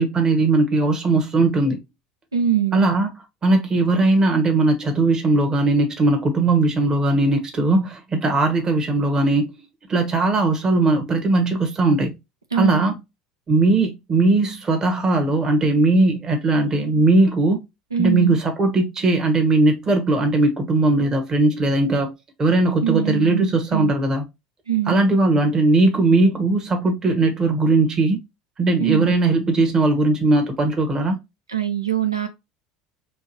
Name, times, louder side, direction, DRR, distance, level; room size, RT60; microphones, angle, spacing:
voice 1, 0.0-1.8 2.7-3.1 3.4-9.5 9.9-12.1 12.6-13.0 13.5-17.6 18.0-22.1 22.4-24.2 24.9-28.2 28.6-31.2, right 2 dB, 30° right, 1.1 m, -19 dB
voice 2, 2.3-2.9 12.5-12.9 17.9-18.4 22.8-23.9 24.7-25.0 28.8-29.1 31.5-32.3, right 10 dB, 90° right, 0.4 m, -23 dB
4.5 x 2.5 x 2.9 m
figure-of-eight pair, 70°, 2 cm